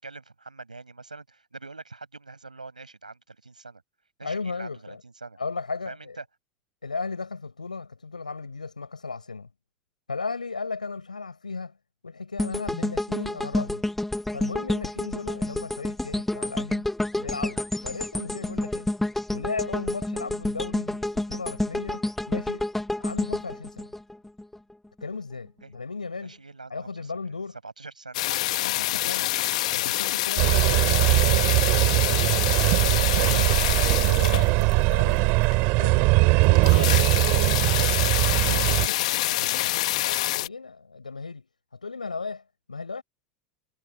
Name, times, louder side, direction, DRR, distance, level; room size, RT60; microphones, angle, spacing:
voice 1, 0.0-3.8 4.2-5.4 5.9-6.2 25.6-25.7 26.2-27.1 27.6-28.4, right 3 dB, 85° right, 7.1 m, -44 dB
voice 2, 4.2-5.0 5.4-6.2 6.8-9.5 10.1-11.8 12.0-13.8 14.3-16.9 17.2-18.9 19.3-22.7 23.0-23.9 25.0-26.4 26.7-27.6 28.5-29.3 29.7-32.3 32.7-33.6 34.0-37.9 38.4-41.5 41.7-42.4 42.7-43.0, left 4 dB, 85° left, 6.1 m, -36 dB
sound 1, 12.4-24.6 25.0-25.1, left 1 dB, 5° left, 1.4 m, -29 dB
sound 2, 28.1-34.9 35.5-35.6 35.9-36.0 36.2-36.3 36.4-40.5, left 17 dB, 65° left, 1.9 m, -26 dB
sound 3, 30.4-38.9, right 28 dB, 50° right, 4.4 m, -21 dB
figure-of-eight pair, 80°, 4 cm